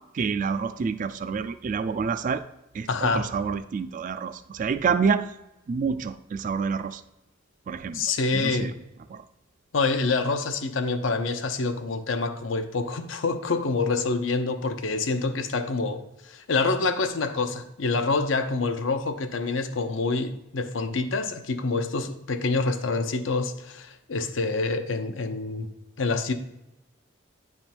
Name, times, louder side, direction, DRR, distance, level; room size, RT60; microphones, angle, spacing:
voice 1, 0.1-2.4 2.7-5.3 5.7-7.0 7.7-8.1 8.3-8.7 9.1-9.2, right 5 dB, 45° right, 0.3 m, -28 dB
voice 2, 2.9-3.3 7.9-8.7 9.7-25.7 26.0-26.3, left 3 dB, 85° left, 0.6 m, -27 dB
9.8 x 3.5 x 4.4 m
head